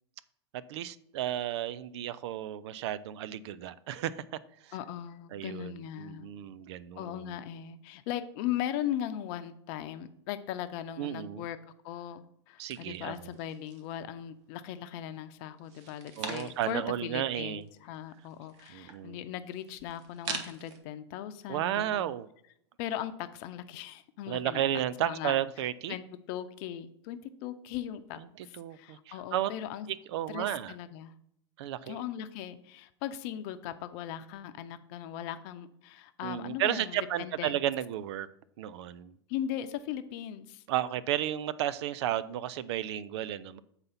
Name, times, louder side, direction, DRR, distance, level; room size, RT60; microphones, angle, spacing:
voice 1, 0.5-4.2 4.6-4.7 5.3-7.4 11.0-11.4 12.6-13.2 16.2-17.7 18.7-19.2 21.5-22.3 24.3-26.0 28.4-29.5 29.9-30.8 31.6-32.0 36.2-38.3 38.6-39.1 40.7-43.6, right 12 dB, 70° right, 17 dB, 0.5 m, -33 dB
voice 2, 4.7-6.3 7.0-11.6 11.8-22.1 22.8-24.6 25.0-25.4 25.9-29.9 30.3-31.1 31.9-37.6 39.3-40.6, left 11 dB, 55° left, 10 dB, 0.7 m, -38 dB
sound 1, 12.7-14.0 14.4-15.1 15.6-16.9 17.2-17.3 17.5-20.8, right 5 dB, 45° right, 1.3 m, -43 dB
7.9 x 4.1 x 5.7 m, 0.71 s
hypercardioid pair, 115°, 15 cm